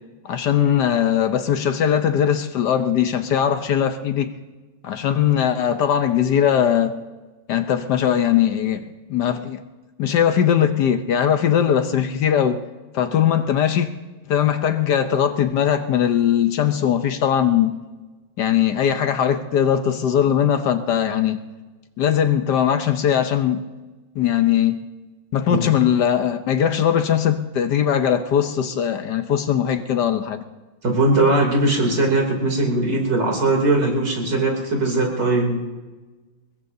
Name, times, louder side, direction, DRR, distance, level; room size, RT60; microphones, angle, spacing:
voice 1, 0.2-4.3 4.8-6.9 7.5-9.6 10.0-12.6 12.9-13.9 14.3-17.8 18.4-21.4 22.0-23.6 24.1-24.8 25.3-30.4, left 9 dB, 65° left, 9 dB, 1.3 m, -20 dB
voice 2, 30.8-35.6, right 2 dB, 60° right, 0 dB, 3.6 m, -20 dB
23.5 x 21.0 x 2.7 m, 1.2 s
omnidirectional pair, 2.2 m